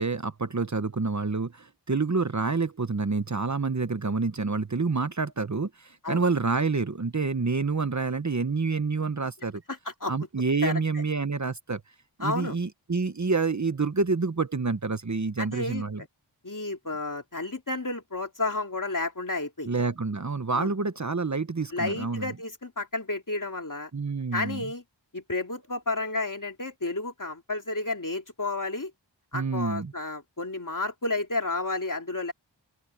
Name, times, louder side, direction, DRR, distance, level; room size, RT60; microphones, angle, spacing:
voice 1, 0.0-9.6 10.1-11.8 12.2-16.0 19.7-22.3 23.9-24.7 29.3-29.9, right 4 dB, 40° right, 1.0 m, -28 dB
voice 2, 9.7-10.1 10.6-11.0 12.2-12.6 15.4-16.1 16.4-19.7 20.5-20.7 21.7-23.9 24.3-24.8 25.1-28.9 29.3-32.3, left 2 dB, 45° left, 2.9 m, -31 dB
open air
wide cardioid pair, 50°, 44 cm